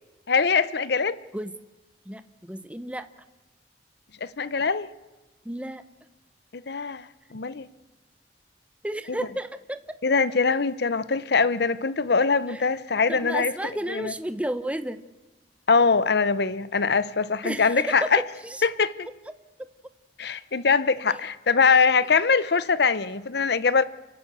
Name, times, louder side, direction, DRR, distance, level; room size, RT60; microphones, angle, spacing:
voice 1, 0.3-1.2 4.2-4.9 6.5-7.7 9.1-9.2 10.0-13.5 13.9-14.1 15.7-18.2 18.8-19.1 20.2-23.8, left 5 dB, 65° left, 0.8 m, -23 dB
voice 2, 2.1-3.1 5.4-5.8 8.8-9.8 10.1-10.2 12.5-12.7 13.1-15.0 17.4-18.6 21.1-21.2, right 1 dB, 5° right, 0.8 m, -32 dB
28.5 x 12.5 x 8.1 m
head